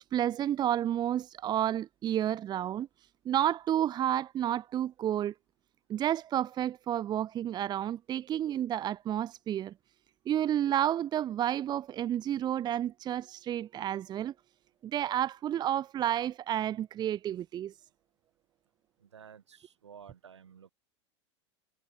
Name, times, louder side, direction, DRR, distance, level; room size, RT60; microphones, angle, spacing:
voice 1, 0.0-2.9 3.2-5.3 5.9-9.7 10.3-14.3 14.8-17.7, right 11 dB, 30° right, 1.2 m, -30 dB
voice 2, 19.0-20.7, right 7 dB, 70° right, 7.8 m, -52 dB
figure-of-eight pair, 85°, 15 cm